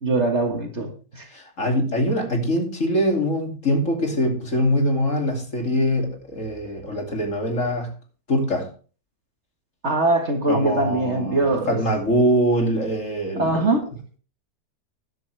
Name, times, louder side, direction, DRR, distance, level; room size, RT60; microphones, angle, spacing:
voice 1, 0.0-1.3 9.8-11.8 13.4-13.8, right 2 dB, 45° right, 5 dB, 1.8 m, -22 dB
voice 2, 1.3-7.9 8.3-8.7 10.5-13.7, equal, 50° left, 2 dB, 3.0 m, -23 dB
13.5 x 10.5 x 3.4 m, 0.37 s
omnidirectional pair, 1.7 m